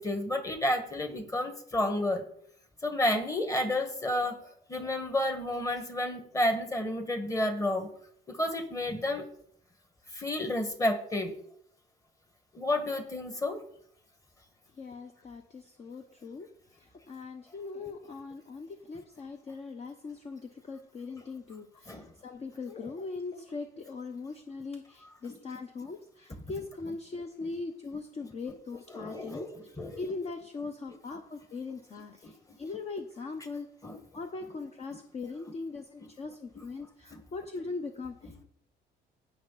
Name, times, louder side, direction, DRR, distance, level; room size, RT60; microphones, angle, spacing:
voice 1, 0.0-2.2 2.8-4.3 4.7-7.9 8.3-9.3 10.1-11.3 12.5-13.6 21.9-22.0 28.9-29.9 32.2-32.3 33.8-34.0 37.1-37.2, left 1 dB, 20° left, 6 dB, 1.9 m, -30 dB
voice 2, 14.8-16.5 16.8-29.5 30.0-33.7 34.1-38.4, left 4 dB, 40° left, 6 dB, 1.0 m, -40 dB
15.5 x 5.6 x 4.2 m, 0.65 s
cardioid pair, 110°, 17 cm